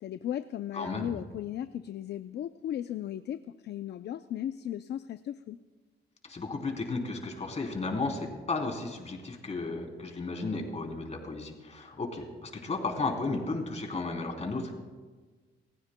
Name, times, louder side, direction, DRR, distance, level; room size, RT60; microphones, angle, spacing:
voice 1, 0.0-3.4 3.6-5.6, left 11 dB, 60° left, 11 dB, 0.5 m, -36 dB
voice 2, 0.7-1.2 6.3-14.7, left 3 dB, 35° left, 2 dB, 3.2 m, -34 dB
28.0 x 15.0 x 2.2 m, 1.4 s
cardioid pair, 90°, 20 cm